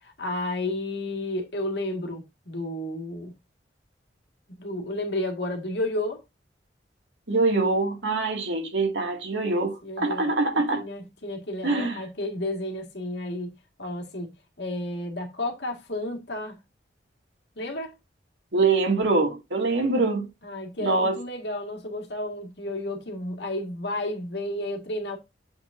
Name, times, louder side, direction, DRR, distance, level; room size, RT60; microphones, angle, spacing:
voice 1, 0.0-3.3 4.6-6.2 9.5-10.3 10.5-14.3 14.6-16.6 17.6-17.9 20.4-25.2, left 1 dB, 75° left, 1.9 m, -32 dB
voice 2, 7.3-10.9 11.6-12.0 18.5-20.3 20.8-21.2, right 3 dB, 85° right, 2.2 m, -24 dB
7.7 x 6.0 x 2.6 m
head